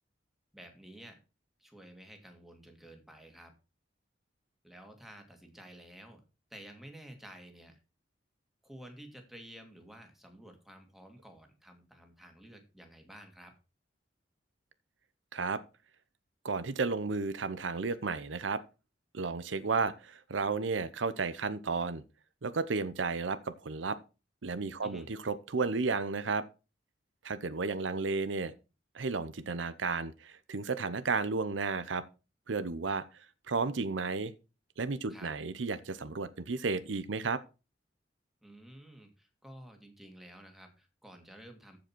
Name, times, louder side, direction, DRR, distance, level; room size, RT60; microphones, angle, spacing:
voice 1, 0.5-1.2 1.6-3.5 4.6-6.2 6.5-7.8 8.6-13.5 24.8-25.1 35.1-35.3 38.4-41.8, right 1 dB, ahead, 2.1 m, -52 dB
voice 2, 16.4-18.6 19.1-22.0 22.4-24.0 24.4-26.5 27.2-28.5 28.9-32.0 32.5-34.3 34.8-37.4, right 4 dB, 85° right, 0.7 m, -33 dB
14.5 x 5.1 x 4.5 m
head